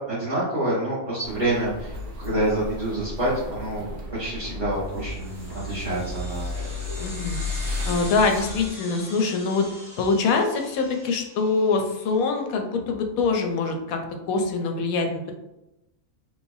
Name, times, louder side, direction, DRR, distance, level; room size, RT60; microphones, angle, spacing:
voice 1, 0.1-3.8 4.1-6.5, right 1 dB, 35° right, -11 dB, 1.3 m, -27 dB
sound 1, 1.2-8.7, left 2 dB, 60° right, 1.0 m, -34 dB
sound 2, 5.0-11.9, equal, 5° right, 1.3 m, -41 dB
voice 2, 7.0-7.4 7.8-9.7 10.0-14.0 14.3-15.3, left 4 dB, 90° left, 4 dB, 1.1 m, -24 dB
3.1 x 3.0 x 2.7 m, 0.92 s
omnidirectional pair, 1.4 m